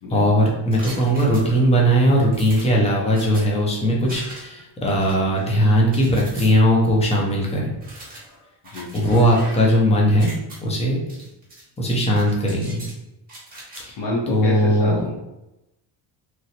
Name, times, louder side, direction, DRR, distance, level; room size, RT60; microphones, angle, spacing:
voice 1, 0.1-7.7 8.9-10.3 10.6-11.0 11.8-12.8 13.8-14.0 14.3-15.0, equal, 15° left, -2 dB, 0.6 m, -19 dB
sound 1, 0.7-1.8 2.3-3.4 4.1-4.6 5.0-6.5 7.0-7.1 7.8-9.8 10.1-10.6 11.1-11.6 11.9-12.9 13.3-13.8, right 1 dB, 20° right, 1.2 m, -40 dB
voice 2, 14.0-15.1, left 1 dB, 60° left, -4 dB, 0.8 m, -28 dB
3.1 x 2.5 x 2.8 m, 0.92 s
cardioid pair, 130°, 48 cm